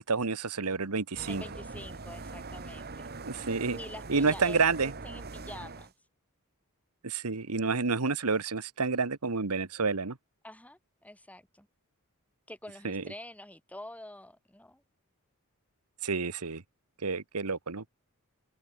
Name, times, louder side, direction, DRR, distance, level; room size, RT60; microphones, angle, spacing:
voice 1, 0.0-1.4 3.3-3.8 4.1-4.9 7.0-10.2 12.8-13.0 16.0-16.6 17.0-17.9, right 4 dB, 80° right, 1.3 m, -29 dB
sound 1, 1.1-5.9, right 3 dB, 45° right, 1.8 m, -42 dB
voice 2, 1.3-3.1 3.7-5.9 10.4-11.7 12.5-14.8, left 1 dB, 5° left, 4.2 m, -46 dB
head